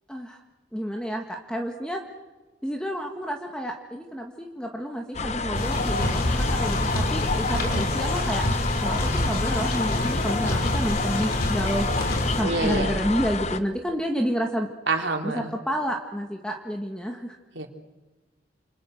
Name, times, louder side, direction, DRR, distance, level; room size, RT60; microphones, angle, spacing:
voice 1, 0.1-0.4 0.7-2.0 2.6-8.4 8.8-14.7 15.2-17.4, equal, 5° left, 2 dB, 1.8 m, -30 dB
sound 1, 5.1-13.6, left 3 dB, 35° left, 1.0 m, -28 dB
sound 2, 5.5-12.4, left 1 dB, 55° left, 4.1 m, -27 dB
voice 2, 12.4-12.9 14.9-15.5 17.5-17.7, right 3 dB, 75° right, 4 dB, 3.6 m, -27 dB
29.5 x 29.0 x 6.6 m, 1.2 s
head